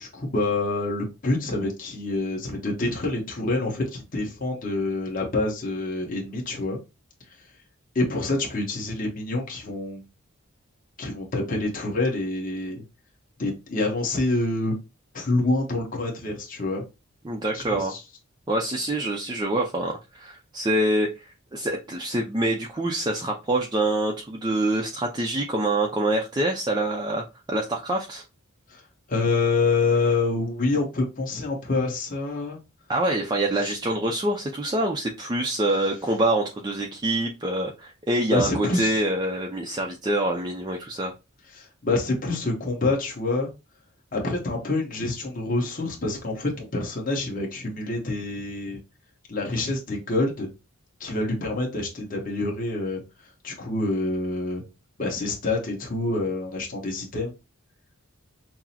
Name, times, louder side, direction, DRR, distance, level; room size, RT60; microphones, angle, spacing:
voice 1, 0.0-6.8 7.9-10.0 11.0-12.8 13.4-14.7 15.1-16.8 17.5-18.0 28.7-28.8 29.1-32.6 33.6-33.7 38.3-39.0 41.5-43.5 44.1-48.8 49.3-50.5 51.0-53.0 53.4-54.6 55.0-57.3, left 2 dB, 40° left, 0 dB, 1.1 m, -27 dB
voice 2, 17.2-17.9 18.5-28.2 32.9-41.1, right 1 dB, 20° right, 1 dB, 0.4 m, -26 dB
5.9 x 2.0 x 2.8 m, 0.26 s
head